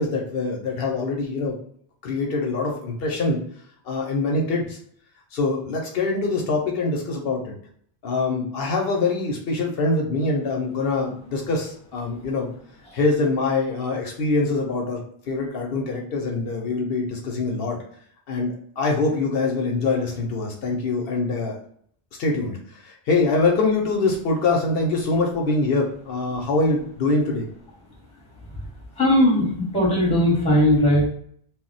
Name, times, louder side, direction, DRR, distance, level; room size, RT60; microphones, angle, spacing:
voice 1, 0.0-1.5 2.0-3.4 3.9-4.8 5.3-7.5 8.0-12.5 12.9-17.8 18.3-21.5 22.2-27.5, left 3 dB, 75° left, 0 dB, 0.8 m, -24 dB
voice 2, 29.0-31.1, left 1 dB, 5° left, -4 dB, 0.9 m, -18 dB
2.2 x 2.0 x 3.8 m, 0.63 s
omnidirectional pair, 1.0 m